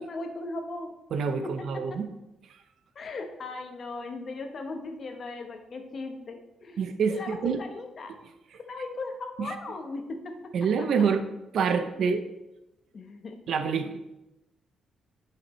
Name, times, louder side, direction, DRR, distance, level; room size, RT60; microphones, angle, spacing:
voice 1, 0.0-0.9 2.9-6.8 7.1-8.1 8.6-10.3 12.9-13.4, left 3 dB, 40° left, 4 dB, 1.0 m, -37 dB
voice 2, 1.1-2.1 6.8-7.6 8.1-8.2 8.5-8.6 9.4-9.6 10.5-11.3 11.5-12.3 13.5-14.0, right 6 dB, 60° right, 9 dB, 0.6 m, -27 dB
10.0 x 5.7 x 3.1 m, 0.97 s
cardioid pair, 135°, 0 cm